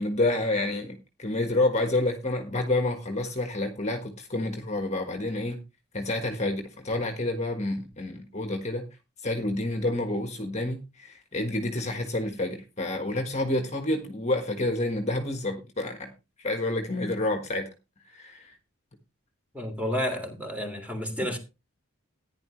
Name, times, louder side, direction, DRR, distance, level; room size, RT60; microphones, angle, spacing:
voice 1, 0.0-5.6 5.9-8.8 9.2-16.1 16.4-17.7 18.1-18.5, left 2 dB, 30° left, 1.6 m, -29 dB
voice 2, 19.5-21.4, equal, 5° right, 3.2 m, -31 dB
15.0 x 10.5 x 3.2 m
head